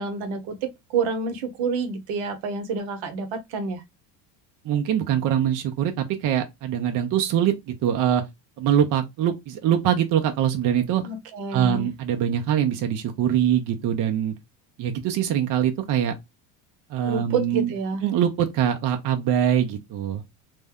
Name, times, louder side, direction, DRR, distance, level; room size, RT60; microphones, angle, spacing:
voice 1, 0.0-3.8 11.0-11.9 17.0-18.0, right 5 dB, 70° right, 0.9 m, -28 dB
voice 2, 4.6-8.2 8.6-11.0 11.5-14.3 14.8-16.1 16.9-17.7 18.0-20.2, right 9 dB, 40° right, 0.5 m, -23 dB
2.6 x 2.1 x 3.4 m
supercardioid pair, 110°, 50 cm